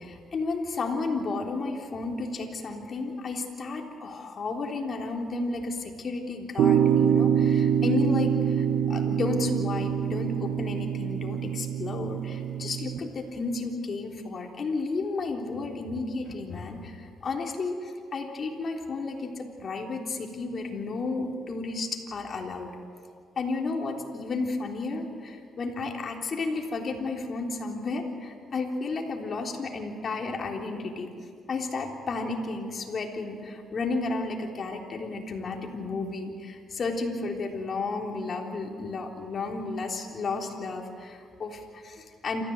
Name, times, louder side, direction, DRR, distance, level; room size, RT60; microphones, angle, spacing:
voice 1, 0.0-22.8 23.4-31.1 31.5-42.4, left 3 dB, 50° left, 1 dB, 3.5 m, -32 dB
sound 1, 6.6-13.0, right 8 dB, 80° right, 1.4 m, -25 dB
28.0 x 14.5 x 8.0 m, 2.3 s
cardioid pair, 90°, 0 cm